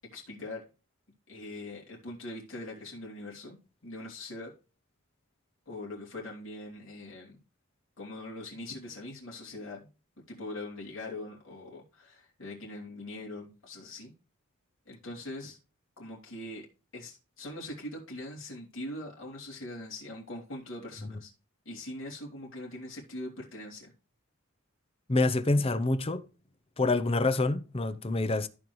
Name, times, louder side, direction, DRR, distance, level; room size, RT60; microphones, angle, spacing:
voice 1, 0.1-0.6 1.3-3.6 3.8-4.5 5.6-7.4 8.0-9.9 10.3-14.1 14.8-15.6 16.0-16.7 16.9-21.3 21.6-23.9, left 1 dB, 65° left, 3.3 m, -42 dB
voice 2, 25.1-26.2 26.8-28.5, left 2 dB, 25° left, 0.7 m, -26 dB
14.5 x 5.3 x 3.1 m
head